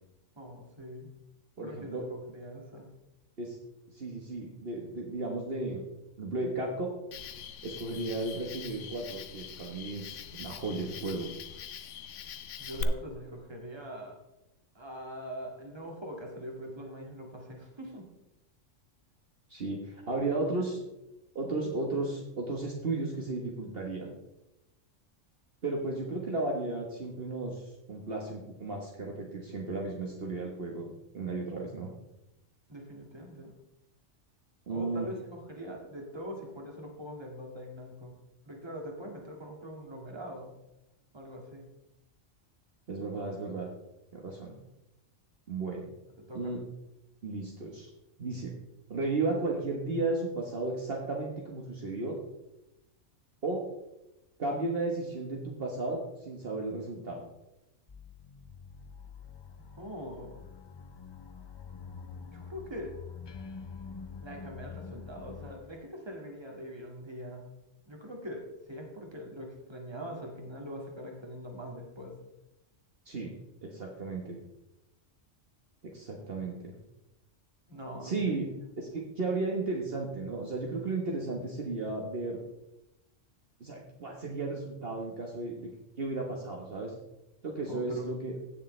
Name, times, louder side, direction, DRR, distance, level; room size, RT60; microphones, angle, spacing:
voice 1, 0.4-1.1 1.6-2.9 12.6-14.2 14.7-18.0 20.4-20.7 32.7-33.5 34.7-38.1 38.4-40.5 41.1-41.7 46.2-46.5 59.7-60.4 62.3-62.9 64.2-67.5 67.9-68.4 68.7-72.2 77.7-78.5 87.7-88.1, equal, 20° right, 0 dB, 2.0 m, -42 dB
voice 2, 1.6-2.0 3.4-3.6 3.9-5.8 6.2-6.9 7.6-11.3 19.5-20.8 21.3-24.1 25.6-31.9 34.7-35.1 42.9-43.7 44.1-44.5 45.5-45.9 46.3-46.6 47.2-47.9 48.2-48.5 48.9-52.2 53.4-53.6 54.4-57.3 73.1-73.3 73.6-74.4 75.8-76.7 78.0-78.5 78.8-82.4 83.6-85.7 86.0-86.9 87.4-88.4, right 3 dB, 50° right, -1 dB, 1.5 m, -34 dB
Cricket, 7.1-12.8, left 9 dB, 75° left, 1.0 m, -43 dB
sound 1, 57.9-65.6, left 5 dB, 45° left, 0.3 m, -46 dB
16.5 x 6.8 x 3.3 m, 0.92 s
omnidirectional pair, 1.3 m